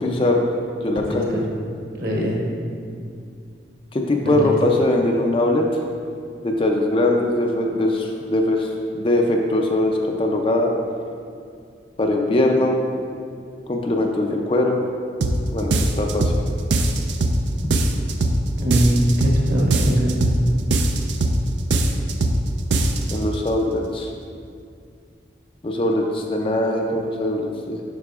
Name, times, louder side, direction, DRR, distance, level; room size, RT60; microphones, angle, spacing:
voice 1, 0.0-0.4 0.8-1.4 3.9-5.8 6.4-10.7 12.0-12.8 13.7-14.8 15.5-16.3 23.1-24.1 25.6-27.8, left 1 dB, 30° left, 1 dB, 0.4 m, -21 dB
voice 2, 0.9-1.4 2.0-2.4 4.2-4.5 18.6-20.2, equal, 50° right, -3 dB, 1.2 m, -22 dB
sound 1, 15.2-15.4 15.7-16.4 16.7-17.4 17.7-18.4 18.7-19.4 19.7-20.4 20.7-21.4 21.7-22.4 22.7-23.2, right 2 dB, 75° right, 0.5 m, -20 dB
9.5 x 5.7 x 2.4 m, 2.3 s
head